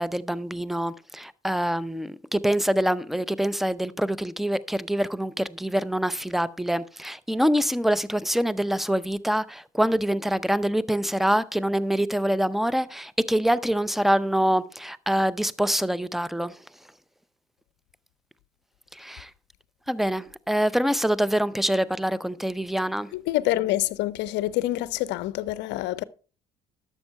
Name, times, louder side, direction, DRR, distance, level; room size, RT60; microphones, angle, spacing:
voice 1, 0.0-16.5 18.9-19.3 19.9-23.1, equal, ahead, 0.6 m, -25 dB
voice 2, 23.1-26.0, left 16 dB, 60° left, 0.6 m, -26 dB
12.0 x 6.9 x 4.4 m
figure-of-eight pair, 55°, 20 cm